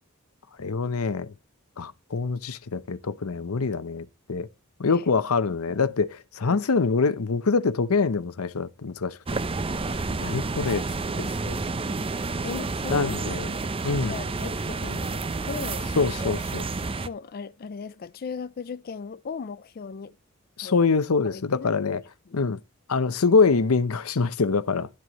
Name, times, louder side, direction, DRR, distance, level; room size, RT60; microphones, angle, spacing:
voice 1, 0.6-1.3 1.8-4.5 4.8-9.2 10.2-10.9 11.2-11.6 12.9-13.5 13.8-14.2 16.0-16.7 20.6-22.0 22.3-22.6 22.9-24.9, left 4 dB, 90° left, 0.7 m, -24 dB
voice 2, 6.5-6.9 9.8-10.4 12.4-13.4 14.0-15.9 17.0-20.2 20.6-20.8 21.2-21.7 22.3-22.5, left 5 dB, 45° left, 0.4 m, -38 dB
sound 1, 9.3-17.1, right 3 dB, 25° right, 0.6 m, -30 dB
11.5 x 7.6 x 3.0 m
head